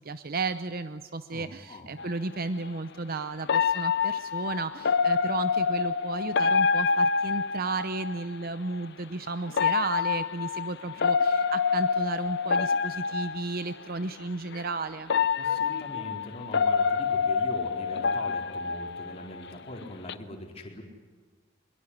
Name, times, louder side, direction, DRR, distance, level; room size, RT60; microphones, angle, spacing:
voice 1, 0.0-15.1, right 3 dB, 50° right, 11 dB, 0.8 m, -33 dB
voice 2, 1.3-1.9 15.4-20.8, left 1 dB, 30° left, 0 dB, 4.3 m, -42 dB
sound 1, 2.0-2.1 3.5-8.2 9.5-13.7 14.5-14.6 15.1-19.5 19.8-20.1, left 5 dB, 60° left, 0.7 m, -27 dB
23.0 x 22.0 x 9.8 m, 1.4 s
head